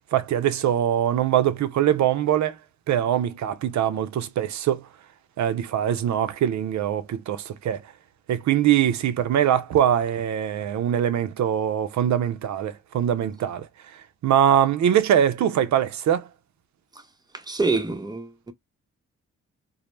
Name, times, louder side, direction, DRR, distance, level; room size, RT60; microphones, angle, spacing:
voice 1, 0.1-2.6 2.9-4.9 5.4-7.9 8.3-16.3, right 10 dB, 60° right, 0.5 m, -23 dB
voice 2, 17.5-18.5, right 3 dB, 10° right, 0.7 m, -26 dB
2.1 x 2.0 x 3.0 m
supercardioid pair, 55°, 32 cm